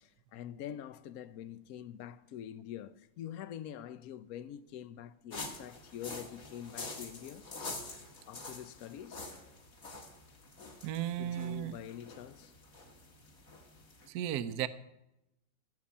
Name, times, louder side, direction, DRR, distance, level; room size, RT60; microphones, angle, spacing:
voice 1, 0.0-7.5 8.3-9.2 11.2-12.5, left 10 dB, 70° left, 0.9 m, -45 dB
sound 1, 5.3-14.1, left 3 dB, 50° left, 2.3 m, -47 dB
voice 2, 10.8-11.7 14.1-14.7, right 11 dB, 65° right, 1.1 m, -35 dB
15.5 x 5.8 x 8.5 m
omnidirectional pair, 2.0 m